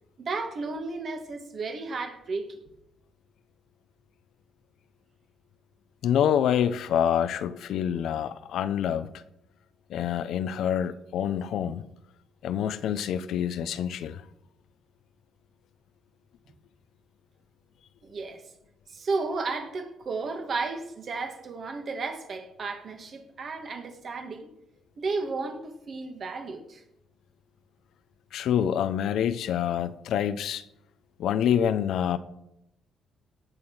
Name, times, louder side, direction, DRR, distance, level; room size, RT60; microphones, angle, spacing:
voice 1, 0.2-2.6 18.0-18.4 18.9-24.5 25.0-26.8, right 3 dB, 50° right, 2.3 m, -33 dB
voice 2, 6.0-9.1 9.9-11.8 12.4-14.2 28.3-30.6 31.2-32.2, left 9 dB, 75° left, 0.8 m, -26 dB
18.0 x 6.8 x 5.7 m
cardioid pair, 90°, 0 cm